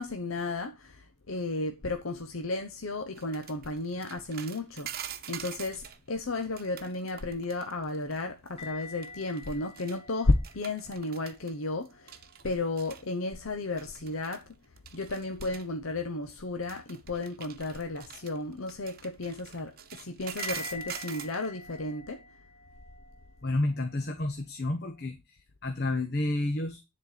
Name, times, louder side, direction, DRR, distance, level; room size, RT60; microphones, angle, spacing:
voice 1, 0.0-12.2 12.4-14.4 14.9-22.2, left 2 dB, 70° left, 0.9 m, -33 dB
sound 1, 3.2-6.0 6.4-8.2 8.5-8.7 9.0-10.0 10.3-11.5 11.9-13.0 13.8-14.5 14.8-15.7 16.6-21.5, right 9 dB, 45° right, 1.0 m, -44 dB
sound 2, 8.6-12.5 12.9-13.5 20.4-25.0, left 4 dB, 30° left, 2.9 m, -47 dB
voice 2, 23.4-25.4 25.6-26.8, left 2 dB, 50° left, 1.1 m, -30 dB
10.0 x 4.4 x 6.6 m
head